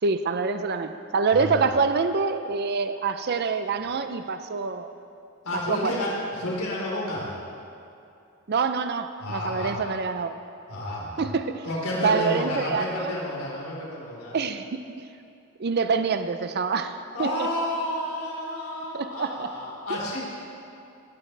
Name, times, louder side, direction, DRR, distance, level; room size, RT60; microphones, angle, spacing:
voice 1, 0.0-4.9 5.7-6.0 8.5-10.3 11.2-11.6 12.0-13.1 14.3-14.8 15.6-17.3 18.9-19.5 19.9-20.0, right 5 dB, 50° right, 9 dB, 0.5 m, -26 dB
voice 2, 1.3-1.6 5.4-7.3 9.2-9.7 10.7-11.3 11.6-14.4 17.1-20.2, left 1 dB, 85° left, -5 dB, 4.1 m, -30 dB
19.0 x 15.0 x 3.3 m, 2.6 s
head